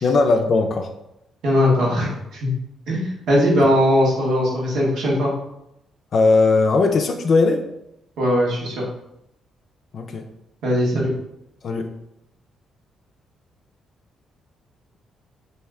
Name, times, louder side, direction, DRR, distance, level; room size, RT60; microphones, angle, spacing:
voice 1, 0.0-0.9 6.1-7.6 9.9-10.2 11.6-11.9, left 3 dB, 55° left, 4 dB, 0.4 m, -18 dB
voice 2, 1.4-2.5 2.9-5.3 8.2-8.8 10.6-11.1, left 1 dB, 75° right, -3 dB, 1.2 m, -19 dB
3.2 x 2.7 x 3.5 m, 0.82 s
cardioid pair, 90°, 0 cm